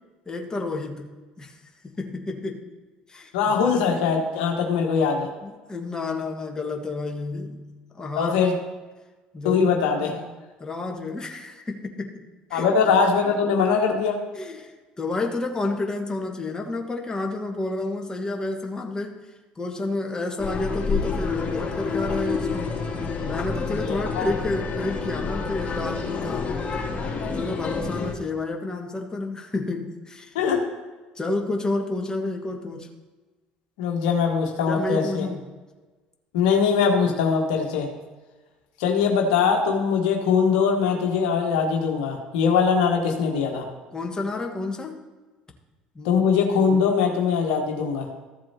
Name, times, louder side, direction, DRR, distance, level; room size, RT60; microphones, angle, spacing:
voice 1, 0.2-2.7 3.1-3.7 5.4-7.7 7.9-8.4 9.3-9.6 10.0-10.3 10.6-12.2 12.5-12.7 14.3-19.2 19.5-22.8 23.2-26.5 27.3-30.3 31.1-32.9 34.6-35.5 43.9-45.0 45.9-46.2, left 2 dB, 20° left, 2 dB, 1.6 m, -30 dB
voice 2, 3.3-5.3 8.2-8.5 9.4-10.2 12.5-14.2 23.7-24.3 30.3-30.6 33.8-35.3 36.3-37.9 38.8-43.6 46.0-48.1, left 6 dB, 75° left, 1 dB, 1.4 m, -22 dB
sound 1, 20.4-28.1, left 4 dB, 35° left, 2.6 m, -28 dB
14.5 x 7.5 x 2.9 m, 1.2 s
hypercardioid pair, 65°, 4 cm